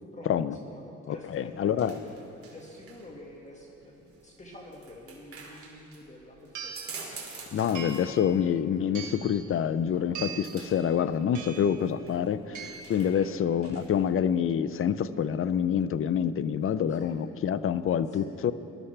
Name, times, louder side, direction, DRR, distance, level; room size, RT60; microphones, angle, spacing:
voice 1, 0.1-2.1 2.5-7.0 13.1-13.4 16.9-17.2 18.1-18.4, left 1 dB, 25° left, -1 dB, 1.9 m, -48 dB
voice 2, 1.1-1.9 7.5-18.5, left 8 dB, 45° left, 14 dB, 0.5 m, -27 dB
sound 1, 1.1-14.1, right 4 dB, 50° right, 2.6 m, -49 dB
sound 2, 5.8-5.9 6.5-7.0 7.7-8.2 8.9-9.4 10.1-10.6 11.3-11.8 12.5-13.0, right 6 dB, 80° right, 1.3 m, -40 dB
20.5 x 12.5 x 3.4 m, 2.9 s
cardioid pair, 90°, 30 cm